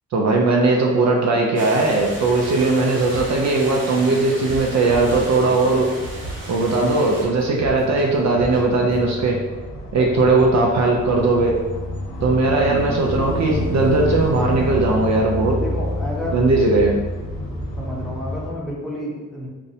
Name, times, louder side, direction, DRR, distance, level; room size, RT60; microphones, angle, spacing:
voice 1, 0.1-5.9 6.5-9.4 9.9-11.6 12.2-15.6 16.3-17.0, right 3 dB, 55° right, 0 dB, 0.4 m, -18 dB
sound 1, 1.6-7.3, right 1 dB, 40° right, 0.8 m, -35 dB
sound 2, 1.8-18.5, left 1 dB, 85° left, 0.6 m, -30 dB
sound 3, 3.1-3.5 3.9-4.0 4.3-7.1 7.4-8.7 8.9-9.0, right 2 dB, 90° right, 1.0 m, -34 dB
voice 2, 10.2-10.8 12.6-13.0 15.5-16.4 17.8-19.5, equal, ahead, -5 dB, 0.7 m, -31 dB
2.5 x 2.0 x 2.7 m, 1.2 s
cardioid pair, 65°, 32 cm